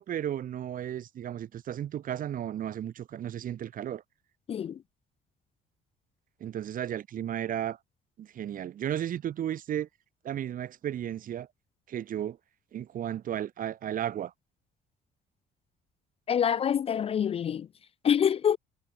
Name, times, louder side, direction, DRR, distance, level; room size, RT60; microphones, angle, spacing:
voice 1, 0.0-4.0 6.4-7.8 8.2-9.9 10.2-11.5 11.9-12.4 12.7-14.3, right 10 dB, 55° right, 2.2 m, -34 dB
voice 2, 4.5-4.8 16.3-17.7 18.0-18.6, left 8 dB, 35° left, 0.4 m, -26 dB
cardioid pair, 110°, 17 cm